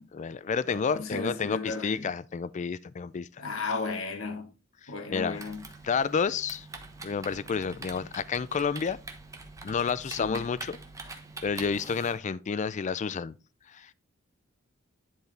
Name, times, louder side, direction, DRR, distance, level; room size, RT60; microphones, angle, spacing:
voice 1, 0.1-3.3 4.8-5.4 5.8-6.7 7.0-9.0 9.6-10.8 11.4-13.3 13.7-13.9, left 6 dB, 35° left, 0.4 m, -30 dB
voice 2, 0.7-2.1 3.4-4.5 4.9-5.6 10.2-10.5, left 3 dB, 80° left, 1.3 m, -34 dB
Typing, 5.3-12.2, right 3 dB, 15° right, 1.0 m, -45 dB
10.5 x 4.6 x 3.3 m
head